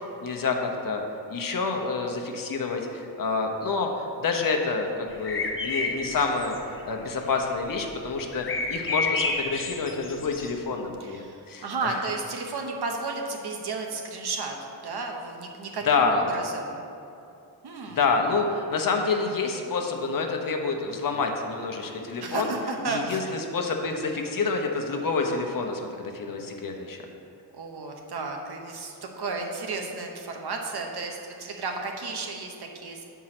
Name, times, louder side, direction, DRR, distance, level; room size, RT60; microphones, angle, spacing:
voice 1, 0.2-1.0 1.3-12.0 15.8-16.3 17.9-22.5 22.9-27.0, left 4 dB, 55° left, 3 dB, 0.9 m, -28 dB
sound 1, 5.1-6.9 7.3-7.4 7.7-10.6, left 3 dB, 30° left, 0.5 m, -30 dB
voice 2, 11.0-16.8 17.6-18.0 22.2-23.4 27.5-33.0, right 3 dB, 65° right, 2 dB, 1.0 m, -33 dB
7.6 x 4.7 x 5.9 m, 2.7 s
wide cardioid pair, 150°, 41 cm